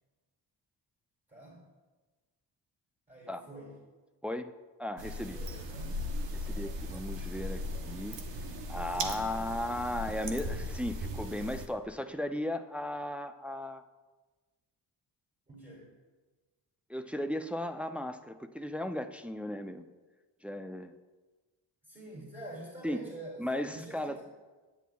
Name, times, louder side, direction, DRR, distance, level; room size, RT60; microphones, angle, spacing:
voice 1, 1.3-1.6 3.1-3.8 5.3-6.0 8.8-9.6 15.5-15.9 21.8-24.2, right 1 dB, 20° right, -5 dB, 2.5 m, -47 dB
voice 2, 4.8-5.4 6.3-8.2 8.7-13.8 16.9-19.8 20.4-20.9 22.8-23.0 23.4-24.2, left 1 dB, 5° right, 7 dB, 0.3 m, -36 dB
sound 1, 5.0-11.7, left 1 dB, 75° right, 1.0 m, -37 dB
9.2 x 8.2 x 2.3 m, 1.3 s
cardioid pair, 60°, 44 cm